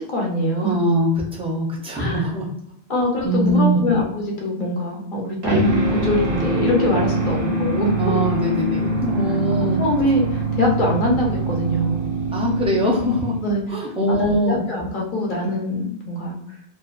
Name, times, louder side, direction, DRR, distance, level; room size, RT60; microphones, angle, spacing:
voice 1, 0.0-0.8 1.9-2.3 2.9-8.1 9.8-12.1 13.4-13.6 14.1-16.4, left 1 dB, 55° left, -1 dB, 0.8 m, -23 dB
voice 2, 0.6-2.5 3.2-3.9 7.3-7.6 8.0-9.8 12.3-13.3 13.7-14.6, right 1 dB, 10° right, -2 dB, 0.3 m, -22 dB
sound 1, 5.4-13.7, right 2 dB, 90° right, 1.1 m, -23 dB
2.7 x 2.1 x 2.3 m, 0.75 s
omnidirectional pair, 1.0 m